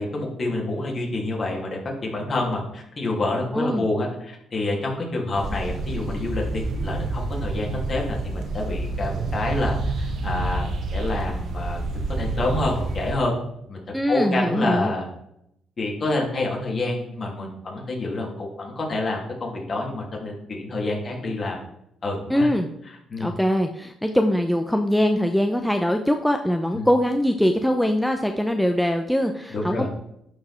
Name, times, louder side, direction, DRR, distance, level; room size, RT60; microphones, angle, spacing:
voice 1, 0.0-11.8 12.2-13.3 13.7-13.8 14.1-15.0 15.8-21.6 22.0-22.5 23.1-23.3 26.7-26.9 29.5-29.9, left 2 dB, 45° left, -1 dB, 2.9 m, -27 dB
voice 2, 3.5-3.9 13.9-14.9 22.3-22.7 23.2-29.9, equal, 5° left, 5 dB, 0.7 m, -22 dB
sound 1, 5.3-13.1, right 2 dB, 65° right, 1.3 m, -28 dB
11.5 x 4.8 x 4.4 m, 0.78 s
cardioid pair, 90°, 0 cm